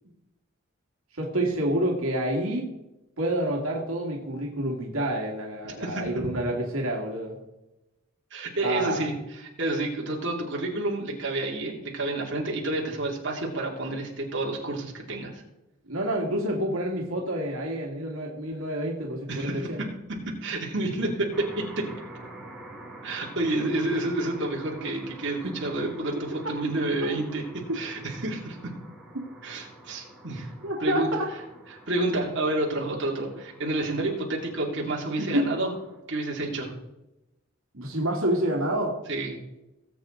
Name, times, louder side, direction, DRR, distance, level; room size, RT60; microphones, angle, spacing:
voice 1, 1.1-2.7 3.2-7.4 8.6-9.0 15.9-19.8 25.4-25.5 27.7-27.8 30.6-31.3 35.2-35.5 37.7-39.0, right 1 dB, 85° right, -1 dB, 2.2 m, -28 dB
voice 2, 5.6-6.0 8.3-15.4 19.3-19.7 20.1-21.3 21.8-21.9 23.0-28.7 29.4-30.5 30.8-31.1 31.9-35.7 36.1-36.7 39.1-39.3, right 2 dB, 60° right, -2 dB, 2.6 m, -29 dB
sound 1, 21.3-36.0, right 1 dB, 5° right, 3.0 m, -47 dB
19.5 x 7.8 x 3.9 m, 0.96 s
head